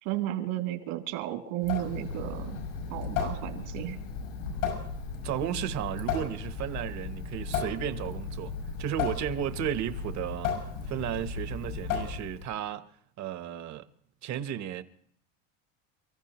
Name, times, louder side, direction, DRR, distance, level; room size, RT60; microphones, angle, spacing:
voice 1, 0.0-2.6 2.9-4.0, right 14 dB, 75° right, 3.0 m, -33 dB
Water tap faucet / Sink (filling or washing) / Drip, 1.6-12.5, left 5 dB, 90° left, 6.7 m, -35 dB
voice 2, 5.2-10.5 10.9-12.9 13.2-13.9 14.2-14.8, right 10 dB, 45° right, 1.1 m, -34 dB
29.5 x 14.5 x 3.1 m
supercardioid pair, 120°, 38 cm